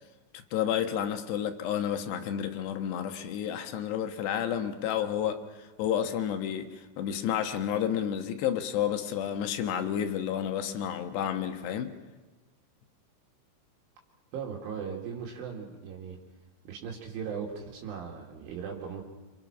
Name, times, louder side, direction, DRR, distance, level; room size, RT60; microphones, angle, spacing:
voice 1, 0.5-11.9, left 9 dB, 70° left, 3.1 m, -31 dB
voice 2, 14.3-16.2 16.6-19.0, right 6 dB, 70° right, 4.8 m, -38 dB
27.5 x 26.0 x 6.1 m
omnidirectional pair, 5.8 m